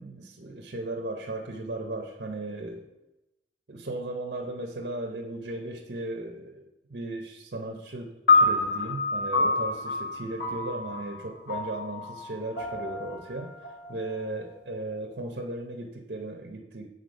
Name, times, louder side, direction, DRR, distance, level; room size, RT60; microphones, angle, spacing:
voice 1, 0.0-2.9 3.7-13.5 13.9-16.9, right 2 dB, 65° right, 2 dB, 0.7 m, -36 dB
sound 1, 8.3-14.7, left 3 dB, 85° left, 1.5 m, -27 dB
8.0 x 3.9 x 5.2 m, 0.96 s
head